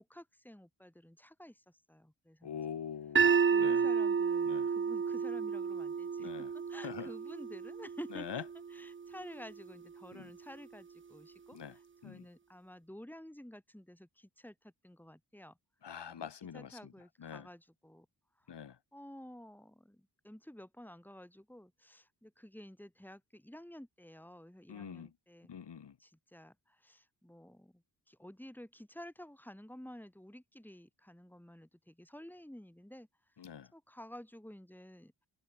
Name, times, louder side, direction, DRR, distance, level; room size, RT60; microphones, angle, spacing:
voice 1, 0.0-1.6 1.9-2.6 3.5-8.4 8.7-15.5 16.1-16.3 16.5-18.1 18.9-25.5 26.0-27.7 28.1-33.1 33.7-35.3, equal, 5° left, 7.3 m, -52 dB
voice 2, 2.4-3.9 4.5-4.7 6.2-6.5 6.8-7.1 8.1-8.4 10.1-10.3 11.5-11.8 12.0-12.2 15.8-16.9 17.2-17.5 18.5-18.8 24.7-25.1 25.5-26.0 33.4-33.7, left 8 dB, 65° left, 2.8 m, -44 dB
sound 1, 3.2-9.3, right 6 dB, 25° right, 0.6 m, -31 dB
cardioid pair, 65°, 45 cm